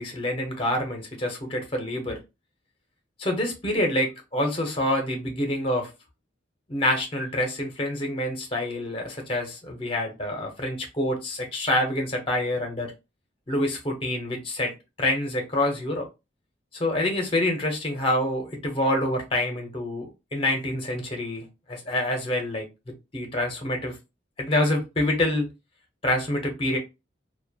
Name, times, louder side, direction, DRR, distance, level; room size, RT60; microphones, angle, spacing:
voice 1, 0.0-2.2 3.2-5.9 6.7-12.9 13.5-14.7 15.0-16.1 16.7-24.0 24.4-25.5 26.0-26.8, left 1 dB, 30° left, 0.7 m, -27 dB
3.0 x 2.2 x 2.2 m
head